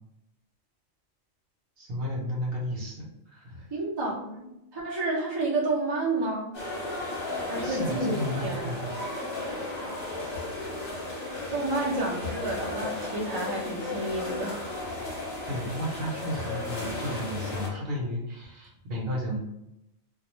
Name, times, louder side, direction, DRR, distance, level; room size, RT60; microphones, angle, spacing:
voice 1, 1.8-3.7 7.6-8.9 15.5-19.4, equal, 55° right, -3 dB, 0.8 m, -33 dB
voice 2, 3.7-6.5 7.5-8.2 8.4-8.7 11.5-14.7, right 2 dB, 35° right, -4 dB, 0.3 m, -30 dB
sound 1, 6.5-17.7, left 2 dB, 35° left, 0.9 m, -34 dB
2.3 x 2.2 x 3.0 m, 0.86 s
omnidirectional pair, 1.4 m